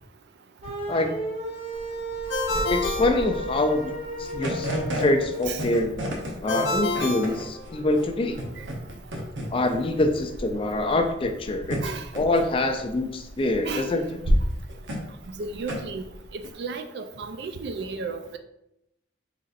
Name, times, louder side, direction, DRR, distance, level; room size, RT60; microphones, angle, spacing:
sound 1, 0.6-5.5, equal, 35° right, 1.0 m, -34 dB
voice 1, 0.9-1.2 2.7-6.0 6.4-8.4 9.5-11.8 12.1-14.1, left 2 dB, 30° left, 6 dB, 0.3 m, -25 dB
sound 2, 1.7-16.5, equal, 90° right, 0.9 m, -32 dB
Ringtone, 2.3-4.0 6.5-8.1, left 2 dB, 80° left, 0.6 m, -29 dB
voice 2, 15.4-16.0 16.3-18.4, right 4 dB, 60° right, 8 dB, 0.4 m, -33 dB
4.0 x 4.0 x 2.5 m, 0.84 s
head